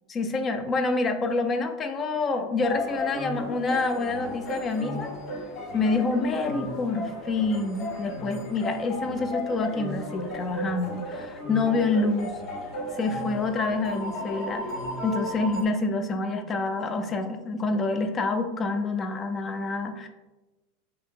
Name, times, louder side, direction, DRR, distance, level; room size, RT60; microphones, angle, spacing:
voice 1, 0.1-5.1 5.7-12.4 12.9-14.7 15.0-20.1, left 3 dB, 20° left, 7 dB, 0.4 m, -27 dB
sound 1, 2.6-15.6, left 1 dB, 35° left, 0.9 m, -34 dB
5.5 x 2.7 x 2.5 m, 1.1 s
supercardioid pair, 150°, 0 cm